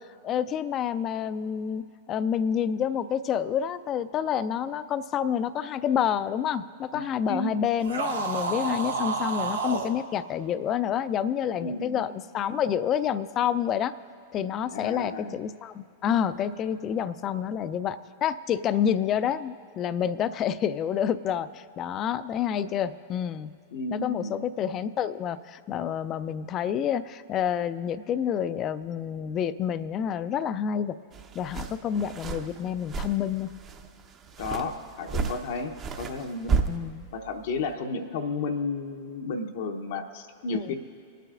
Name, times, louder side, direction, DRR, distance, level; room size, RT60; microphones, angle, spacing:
voice 1, 0.2-13.9 14.3-23.5 23.9-31.0 31.3-33.5 36.7-37.1 40.5-40.7, left 9 dB, 35° left, 14 dB, 0.4 m, -28 dB
voice 2, 7.3-7.6 11.6-12.0 14.7-15.4 23.7-24.4 34.4-36.6 37.1-40.7, left 3 dB, 65° left, 4 dB, 0.8 m, -33 dB
sound 1, 7.8-9.9, right 4 dB, 85° right, 0.9 m, -29 dB
sound 2, 31.1-37.7, right 4 dB, 30° right, 0.7 m, -33 dB
24.5 x 9.1 x 2.5 m, 2.4 s
hypercardioid pair, 105°, 0 cm